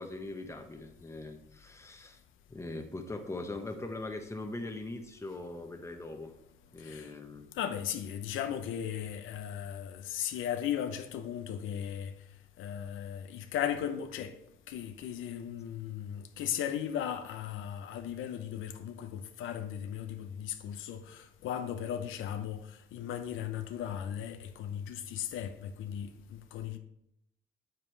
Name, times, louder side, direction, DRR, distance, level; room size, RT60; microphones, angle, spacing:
voice 1, 0.0-2.2 2.5-6.3 6.7-7.5, left 2 dB, 15° left, 1.1 m, -41 dB
voice 2, 6.8-7.1 7.5-12.1 12.6-14.4 14.7-26.8, left 9 dB, 85° left, 0.8 m, -37 dB
7.6 x 7.5 x 3.3 m
cardioid pair, 90°, 20 cm